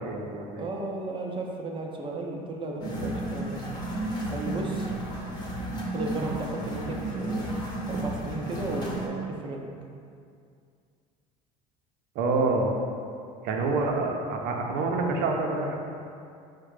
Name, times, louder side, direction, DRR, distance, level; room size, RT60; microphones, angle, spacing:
voice 1, 0.0-0.7 12.1-12.7 13.4-15.8, right 3 dB, 65° right, 1 dB, 0.6 m, -27 dB
voice 2, 0.5-3.6 4.3-4.9 5.9-7.5 7.9-9.7, right 2 dB, 30° right, 0 dB, 0.7 m, -34 dB
sound 1, 2.8-9.1, right 1 dB, 25° left, 1.0 m, -32 dB
4.7 x 2.2 x 4.8 m, 2.4 s
supercardioid pair, 90°, 17 cm